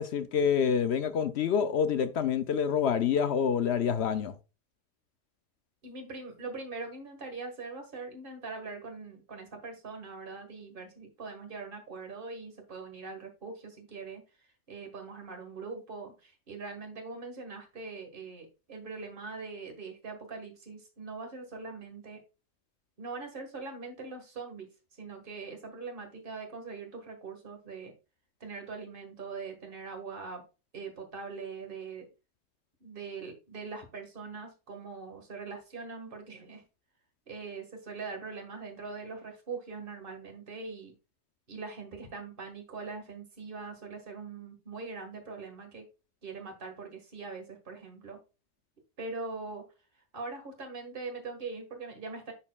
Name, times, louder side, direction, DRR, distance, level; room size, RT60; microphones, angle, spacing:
voice 1, 0.0-4.3, left 7 dB, 65° left, 0.8 m, -27 dB
voice 2, 5.8-22.2 23.0-24.7 25.0-27.9 28.4-30.4 30.7-32.1 32.8-36.6 37.3-40.9 41.5-45.9 46.2-48.2 49.0-49.7 50.1-52.3, right 4 dB, 45° right, 1.8 m, -42 dB
11.0 x 4.3 x 2.3 m
omnidirectional pair, 1.3 m